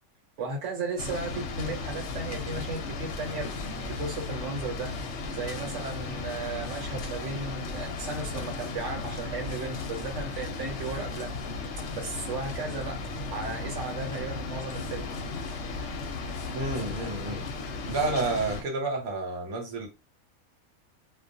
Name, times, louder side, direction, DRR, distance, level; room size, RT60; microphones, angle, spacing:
voice 1, 0.4-4.9 5.3-11.4 11.9-13.0 13.3-15.1, right 3 dB, 65° right, 1.1 m, -35 dB
sound 1, 1.0-18.6, left 3 dB, 65° left, 0.8 m, -35 dB
voice 2, 16.5-17.4 17.8-19.9, right 3 dB, 80° right, 1.2 m, -30 dB
2.3 x 2.2 x 2.6 m
omnidirectional pair, 1.5 m